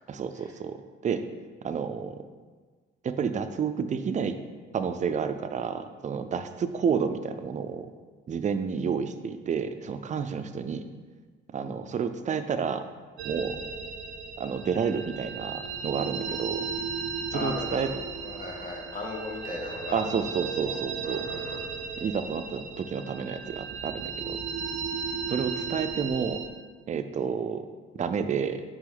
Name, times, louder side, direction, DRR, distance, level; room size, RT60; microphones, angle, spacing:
voice 1, 0.1-0.8 1.0-1.2 1.6-2.2 3.0-4.4 4.7-7.9 8.3-10.9 11.5-12.8 13.2-13.6 14.4-16.7 17.3-17.9 19.9-21.3 22.0-24.4 25.3-26.4 26.9-27.7 27.9-28.6, right 6 dB, 40° right, 9 dB, 0.5 m, -30 dB
sound 1, 13.2-26.5, right 6 dB, 80° right, 0.6 m, -35 dB
voice 2, 17.3-20.0 20.7-21.6, left 2 dB, 45° left, -1 dB, 1.4 m, -37 dB
6.0 x 5.2 x 3.9 m, 1.4 s
cardioid pair, 90°, 20 cm